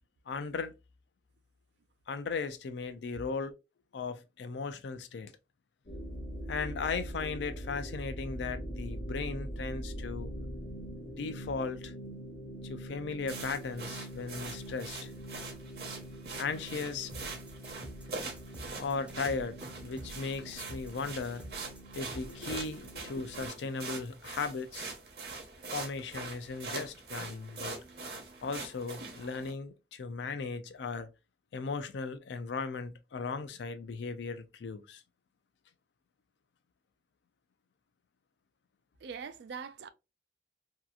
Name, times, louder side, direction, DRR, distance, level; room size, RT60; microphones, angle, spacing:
voice 1, 0.3-0.7 2.1-3.5 3.9-5.3 6.5-10.3 11.1-11.9 12.6-15.1 16.4-17.1 18.8-21.5 21.9-24.9 25.7-27.8 28.4-31.1 31.5-35.0, left 4 dB, 75° left, 0.4 m, -37 dB
sound 1, 5.9-23.5, equal, 50° left, 0.8 m, -43 dB
sound 2, 13.3-29.5, right 4 dB, 55° right, 0.8 m, -43 dB
sound 3, 17.1-22.8, equal, 5° right, 0.5 m, -48 dB
voice 2, 39.0-39.9, right 6 dB, 70° right, 0.3 m, -42 dB
2.7 x 2.4 x 2.3 m
head